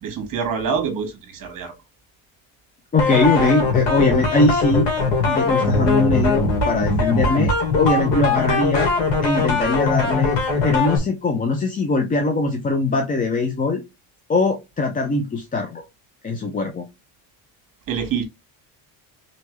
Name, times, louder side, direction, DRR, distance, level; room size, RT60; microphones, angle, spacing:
voice 1, 0.0-1.7 17.9-18.2, right 6 dB, 45° right, 1.6 m, -26 dB
voice 2, 2.9-4.9 5.3-8.9 9.2-13.8 14.3-15.8 16.2-16.9, left 3 dB, 20° left, 0.4 m, -21 dB
sound 1, 3.0-11.0, left 3 dB, 65° left, 2.0 m, -20 dB
3.9 x 3.3 x 3.1 m
cardioid pair, 130°, 47 cm